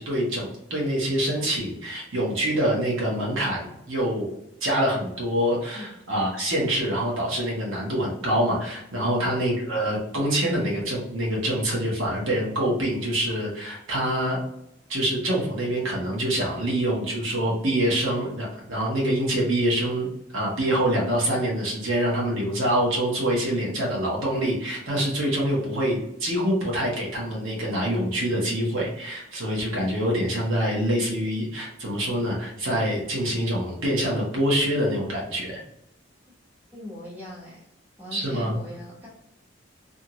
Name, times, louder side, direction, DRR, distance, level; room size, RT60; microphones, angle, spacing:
voice 1, 0.0-4.3 4.6-14.4 14.9-20.1 20.3-35.5 38.1-38.6, right 1 dB, 80° right, -3 dB, 1.0 m, -25 dB
voice 2, 36.7-37.7 38.0-39.1, left 1 dB, 10° right, -7 dB, 1.1 m, -40 dB
2.6 x 2.4 x 2.9 m, 0.81 s
head